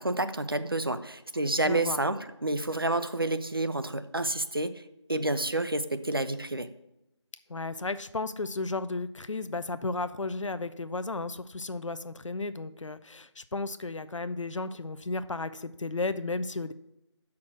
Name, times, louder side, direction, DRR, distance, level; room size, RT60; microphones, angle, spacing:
voice 1, 0.0-4.8 5.1-6.7, right 2 dB, 50° right, 11 dB, 0.5 m, -29 dB
voice 2, 1.6-2.0 7.5-16.7, left 3 dB, 90° left, 12 dB, 0.5 m, -34 dB
6.3 x 5.8 x 6.3 m, 0.87 s
figure-of-eight pair, 180°, 16 cm